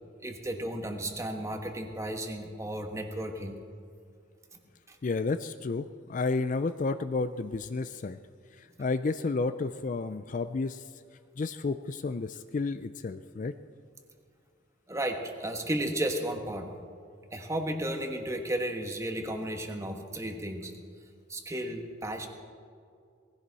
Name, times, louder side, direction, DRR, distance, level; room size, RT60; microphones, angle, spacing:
voice 1, 0.2-3.6 4.9-5.0 14.9-16.7 17.3-20.7 21.3-22.3, right 1 dB, 15° right, 4 dB, 1.4 m, -33 dB
voice 2, 5.0-8.2 8.6-10.8 11.4-13.5, left 3 dB, 40° left, 11 dB, 0.4 m, -31 dB
19.5 x 15.5 x 4.1 m, 2.3 s
head